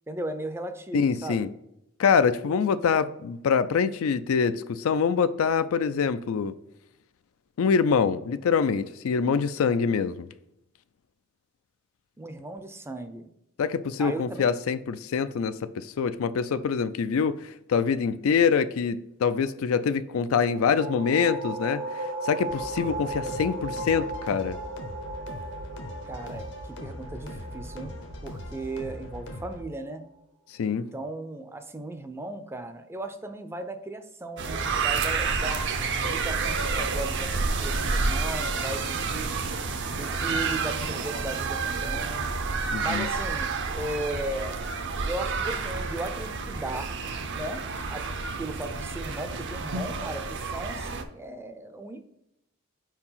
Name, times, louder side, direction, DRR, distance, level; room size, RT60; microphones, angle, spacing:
voice 1, 0.1-1.5 12.2-13.3 14.0-14.5 26.0-27.9 28.2-30.0 30.7-35.7 36.0-39.3 39.9-42.3 42.8-44.6 45.0-46.9 47.3-47.6 47.9-48.1 48.4-52.0, right 2 dB, 10° right, 0.4 m, -36 dB
voice 2, 0.9-1.5 2.0-6.5 7.6-10.3 13.6-24.6 30.6-30.9 42.7-43.0, left 6 dB, 75° left, 0.4 m, -25 dB
sound 1, 20.4-29.8, right 2 dB, 80° right, 1.3 m, -37 dB
sound 2, 22.5-29.6, left 1 dB, 60° left, 0.8 m, -40 dB
sound 3, 34.4-51.0, right 4 dB, 60° right, 0.6 m, -29 dB
4.8 x 4.5 x 5.6 m
head